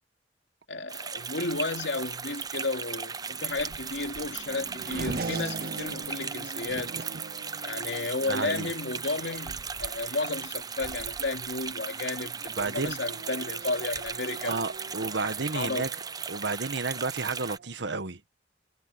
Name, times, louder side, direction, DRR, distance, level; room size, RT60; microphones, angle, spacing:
voice 1, 0.7-7.0 7.6-14.6 15.5-15.9, left 3 dB, 85° left, 2.9 m, -33 dB
sound 1, 0.9-17.6, right 6 dB, 20° right, 0.7 m, -37 dB
Race car auto racing / Accelerating revving vroom, 1.6-17.7, right 3 dB, 55° right, 0.8 m, -43 dB
voice 2, 8.3-8.7 12.6-13.0 14.4-15.9 16.3-18.2, right 3 dB, 85° right, 1.3 m, -31 dB
head